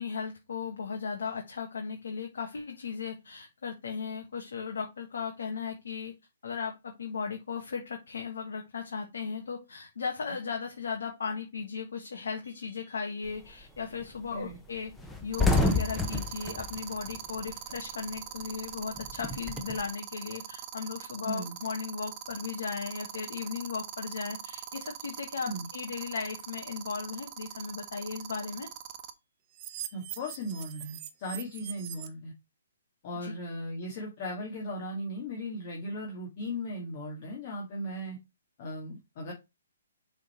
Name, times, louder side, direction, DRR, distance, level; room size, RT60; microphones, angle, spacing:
voice 1, 0.0-6.1 6.4-14.9 15.2-28.7 33.1-33.3, left 5 dB, 70° left, 3 dB, 1.3 m, -36 dB
Full Matrix, 12.5-12.7 15.3-29.1 29.5-32.1, right 13 dB, 35° right, 0.8 m, -41 dB
sound 1, 13.3-13.6 14.0-14.1 14.4-14.6 14.9-17.9 18.2-19.8, left 3 dB, 5° left, 0.9 m, -29 dB
voice 2, 21.2-21.6 25.5-25.7 29.9-32.3 33.0-38.2 38.6-39.3, equal, 40° left, -1 dB, 2.0 m, -37 dB
6.3 x 3.9 x 4.3 m, 0.24 s
hypercardioid pair, 140°, 0 cm